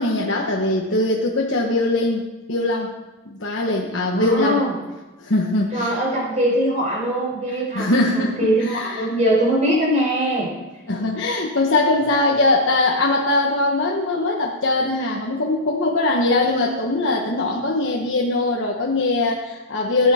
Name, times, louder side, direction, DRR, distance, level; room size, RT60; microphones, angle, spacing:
voice 1, 0.0-2.9 3.3-4.6 5.2-5.9 7.5-8.4 8.7-9.1 10.9-20.1, left 2 dB, 60° left, -1 dB, 1.2 m, -21 dB
voice 2, 4.1-4.7 5.7-10.5, right 1 dB, 35° right, -4 dB, 5.4 m, -21 dB
16.5 x 9.5 x 4.3 m, 1.1 s
head